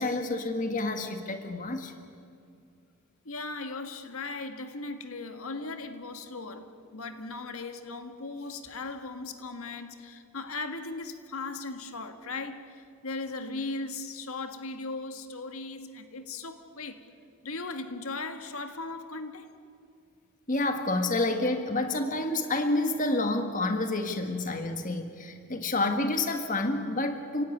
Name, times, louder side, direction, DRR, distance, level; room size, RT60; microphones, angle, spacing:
voice 1, 0.0-1.9 20.5-27.4, left 2 dB, 35° left, 1.6 m, -29 dB
voice 2, 3.3-17.0 17.4-19.5, left 3 dB, 75° left, 1.8 m, -38 dB
30.0 x 17.0 x 9.7 m
head